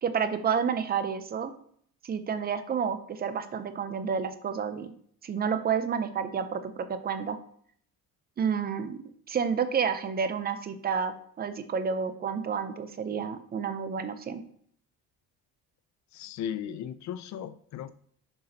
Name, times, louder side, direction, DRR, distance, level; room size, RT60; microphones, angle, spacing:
voice 1, 0.0-1.5 2.0-4.9 5.2-7.4 8.4-9.0 9.3-14.4, right 6 dB, 25° right, 10 dB, 0.4 m, -30 dB
voice 2, 16.1-17.9, left 9 dB, 50° left, 14 dB, 0.4 m, -36 dB
6.7 x 5.9 x 2.7 m, 0.62 s
cardioid pair, 180°, 36 cm